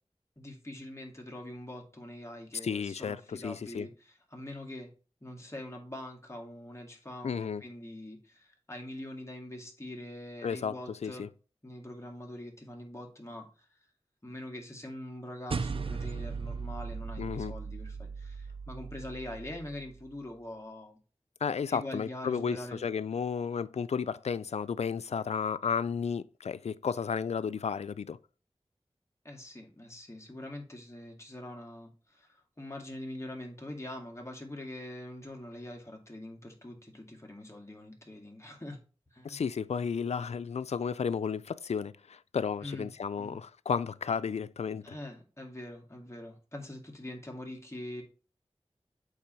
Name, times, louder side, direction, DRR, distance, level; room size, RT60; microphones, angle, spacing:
voice 1, 0.4-4.9 5.2-11.3 11.6-13.5 14.2-21.0 21.7-22.9 29.2-38.8 39.1-39.4 42.6-43.4 44.8-48.0, left 1 dB, 25° left, 2.2 m, -44 dB
voice 2, 2.6-3.9 7.2-7.6 10.4-11.3 17.2-17.6 21.4-28.2 39.2-44.9, left 6 dB, 85° left, 0.4 m, -33 dB
sound 1, 15.5-20.1, right 5 dB, 55° right, 0.4 m, -38 dB
8.4 x 3.4 x 4.4 m
wide cardioid pair, 45°, 11 cm